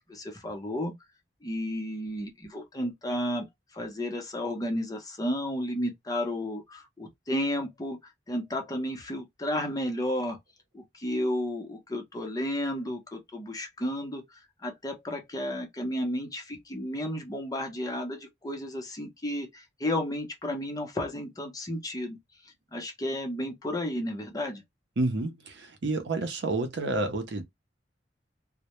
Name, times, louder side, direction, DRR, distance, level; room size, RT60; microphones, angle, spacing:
voice 1, 0.1-0.9 1.4-3.5 3.7-8.0 8.3-10.4 10.7-22.2 22.7-24.6, left 1 dB, 20° left, 0.7 m, -32 dB
voice 2, 25.0-27.4, right 2 dB, 75° right, 0.6 m, -29 dB
2.1 x 2.1 x 2.9 m
head